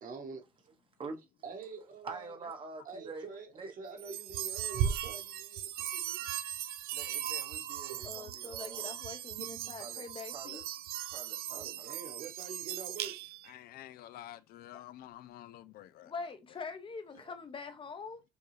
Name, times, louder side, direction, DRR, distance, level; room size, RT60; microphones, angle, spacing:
voice 1, 0.0-0.7 1.4-2.3 2.8-6.3 11.5-13.2, right 4 dB, 55° right, 1.5 m, -46 dB
voice 2, 2.0-3.3 3.5-3.7 6.9-9.0 9.8-10.0 10.3-10.6 11.1-11.9 17.2-17.3, right 4 dB, 30° right, 1.0 m, -46 dB
sound 1, 4.0-13.5, right 10 dB, 70° right, 0.5 m, -38 dB
voice 3, 8.0-10.6 16.0-18.2, left 4 dB, 30° left, 0.8 m, -44 dB
voice 4, 13.4-16.3, left 13 dB, 65° left, 0.4 m, -50 dB
6.9 x 2.4 x 3.2 m
cardioid pair, 110°, 17 cm